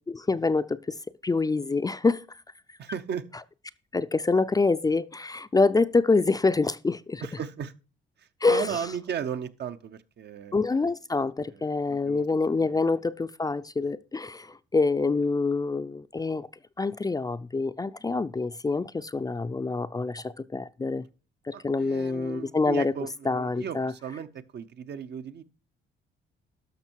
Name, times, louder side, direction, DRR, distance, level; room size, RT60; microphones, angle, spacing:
voice 1, 0.1-1.0 1.2-2.3 3.9-7.2 8.4-8.7 10.5-16.5 16.8-21.0 21.5-22.9 23.3-23.9, left 3 dB, 20° left, 0.4 m, -26 dB
voice 2, 2.8-3.2 7.2-7.7 8.2-10.7 11.5-12.2 12.6-12.8 21.5-25.4, right 8 dB, 60° right, 0.8 m, -36 dB
12.0 x 6.3 x 4.5 m
cardioid pair, 90°, 20 cm